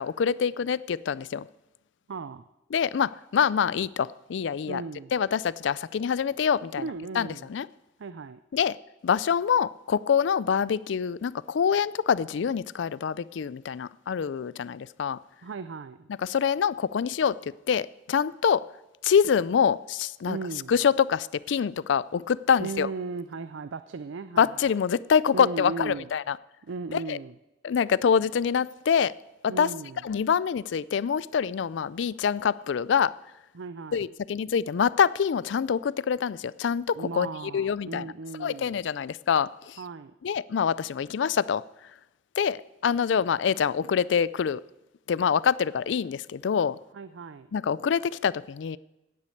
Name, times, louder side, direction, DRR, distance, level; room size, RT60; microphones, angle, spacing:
voice 1, 0.0-1.5 2.7-4.8 5.1-6.8 7.2-7.7 8.5-8.8 9.0-15.2 16.2-17.4 17.7-18.6 19.0-20.4 20.7-22.9 24.4-26.4 26.9-27.2 27.6-29.1 29.4-29.7 30.0-33.1 33.9-37.3 37.5-38.1 38.4-39.8 40.2-41.6 42.4-44.6 45.1-46.8 47.5-48.8, left 7 dB, 70° left, 20 dB, 0.4 m, -25 dB
voice 2, 2.1-2.4 4.7-5.1 6.8-7.5 8.0-8.4 15.4-16.1 20.3-20.8 22.6-24.7 25.3-26.1 26.6-27.4 29.5-30.0 33.5-34.1 36.9-38.8 39.8-40.1 46.9-47.5, right 4 dB, 75° right, 12 dB, 0.5 m, -37 dB
9.6 x 8.3 x 8.4 m, 0.94 s
head